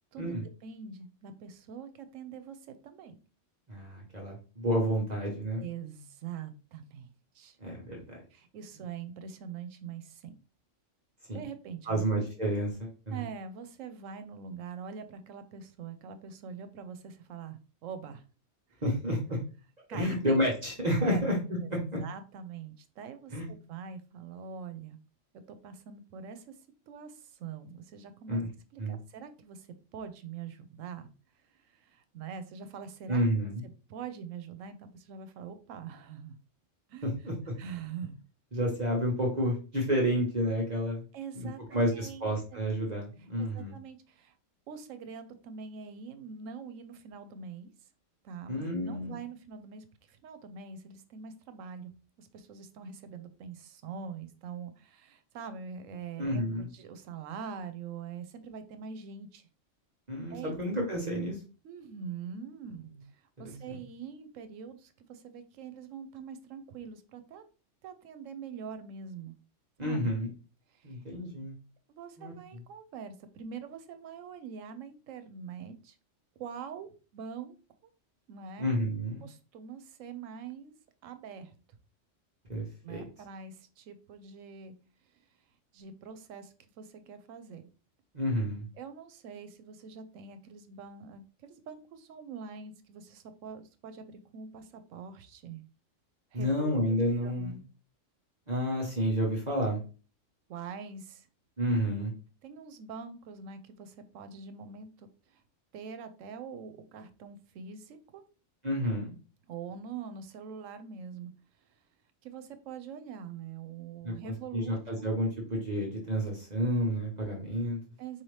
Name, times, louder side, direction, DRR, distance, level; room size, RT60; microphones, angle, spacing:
voice 1, 0.6-3.1 5.6-7.1 7.3-7.6 8.3-10.3 11.3-12.0 13.1-18.2 18.7-18.8 19.9-20.4 21.0-21.2 22.0-25.0 25.5-26.6 26.9-28.4 28.7-29.7 29.9-31.1 31.7-33.2 33.9-36.4 36.9-37.1 37.6-38.2 41.1-42.6 43.4-44.3 44.7-47.7 48.2-51.9 52.2-59.5 60.3-60.6 61.6-62.9 63.4-67.4 67.8-69.4 69.8-70.1 70.7-71.0 71.9-76.0 76.4-77.6 78.3-78.7 79.2-80.7 81.0-81.5 82.8-84.7 85.7-87.6 88.8-95.6 96.3-97.0 97.2-97.6 100.5-101.3 102.4-105.4 105.7-108.2 109.5-111.3 112.2-114.8 118.0-118.2, right 6 dB, 85° right, 10 dB, 1.0 m, -44 dB
voice 2, 3.7-5.6 7.6-8.2 11.3-11.4 11.8-13.2 18.8-19.4 19.9-22.0 23.3-23.5 28.3-28.5 28.8-29.0 33.1-33.6 37.0-37.5 38.5-41.0 41.3-43.7 48.5-49.2 56.2-56.7 60.1-61.4 63.4-63.8 69.8-70.3 70.8-71.5 72.2-72.3 78.6-79.2 82.5-83.0 88.1-88.6 96.3-97.6 98.5-99.8 101.6-102.1 108.6-109.1 114.0-117.8, equal, 35° right, -2 dB, 1.0 m, -30 dB
4.3 x 2.8 x 3.2 m, 0.35 s
omnidirectional pair, 1.3 m